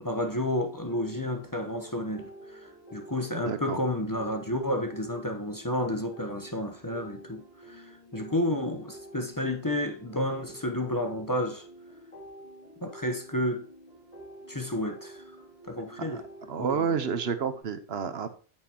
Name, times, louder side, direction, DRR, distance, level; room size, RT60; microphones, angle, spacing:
voice 1, 0.0-11.6 12.8-13.6 14.5-15.2 15.7-16.2 16.6-17.0, left 1 dB, 20° left, 0.9 m, -31 dB
sound 1, 0.8-17.6, right 1 dB, 35° left, 3.2 m, -48 dB
voice 2, 3.5-3.8 16.0-16.2 16.5-18.3, right 6 dB, 75° right, 1.1 m, -30 dB
9.0 x 7.3 x 2.9 m
omnidirectional pair, 1.1 m